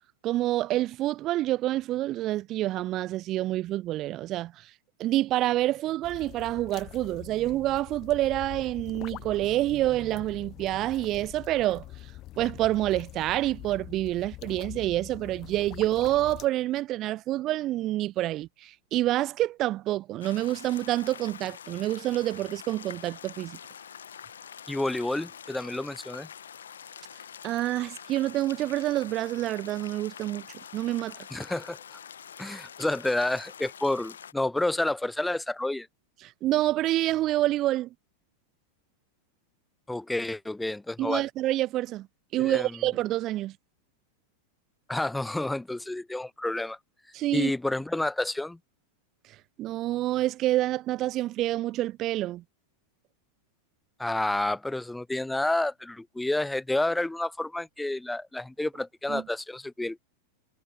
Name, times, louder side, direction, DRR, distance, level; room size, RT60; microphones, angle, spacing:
voice 1, 0.2-4.7 5.0-11.8 12.4-23.6 27.4-30.5 30.7-31.2 36.2-37.9 41.0-42.1 42.3-43.6 47.1-47.5 49.6-52.4 59.1-59.2, right 15 dB, 35° right, 0.8 m, -27 dB
sound 1, 6.0-16.5, left 15 dB, 35° left, 1.1 m, -44 dB
sound 2, 20.2-34.3, left 8 dB, 65° left, 1.6 m, -45 dB
voice 2, 24.7-26.3 31.3-32.0 32.4-35.9 39.9-41.2 42.4-42.8 44.9-46.8 47.3-48.6 54.0-60.0, left 2 dB, 5° left, 1.0 m, -29 dB
figure-of-eight pair, 90°, 0 cm